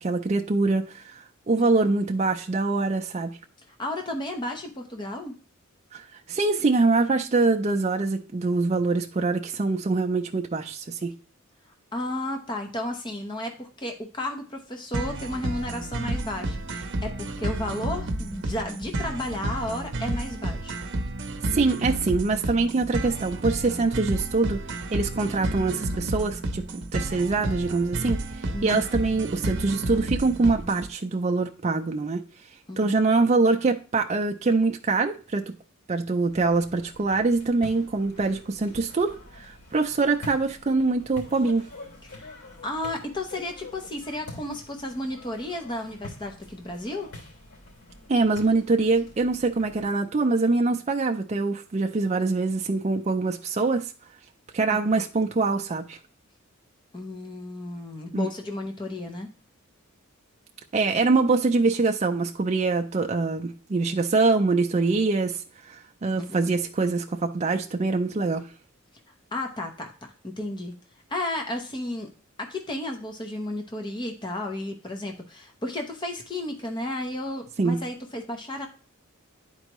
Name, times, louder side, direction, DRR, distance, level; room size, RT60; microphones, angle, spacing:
voice 1, 0.0-3.4 5.9-11.1 21.5-24.6 24.9-32.2 32.8-35.5 35.9-41.7 48.1-53.9 54.5-56.0 58.1-58.3 60.7-68.5 77.6-77.8, right 3 dB, 30° right, 4 dB, 0.4 m, -24 dB
voice 2, 1.6-1.9 3.7-5.3 11.9-20.8 28.5-28.8 32.7-33.0 42.0-42.3 42.6-47.1 54.7-54.8 56.9-59.3 66.2-66.5 69.1-69.9 70.2-70.7 71.1-72.1 72.4-78.7, left 1 dB, 20° left, 3 dB, 0.8 m, -33 dB
sound 1, 14.9-30.9, right 1 dB, 55° right, 0.8 m, -31 dB
sound 2, 36.3-49.8, left 2 dB, 85° left, 3.2 m, -46 dB
10.5 x 4.5 x 3.0 m, 0.38 s
head